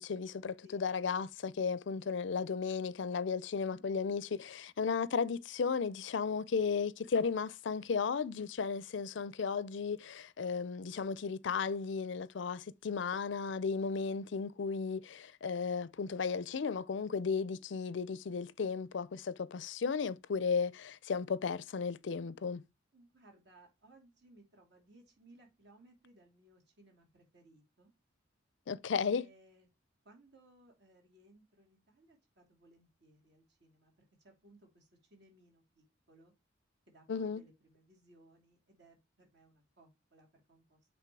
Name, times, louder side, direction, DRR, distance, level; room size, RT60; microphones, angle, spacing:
voice 1, 0.0-22.6 28.7-29.2 37.1-37.4, left 5 dB, 65° left, 0.4 m, -35 dB
voice 2, 22.9-27.9 29.0-29.7 30.0-36.3 36.9-40.8, right 1 dB, 60° right, 3.1 m, -63 dB
8.3 x 3.5 x 4.7 m
head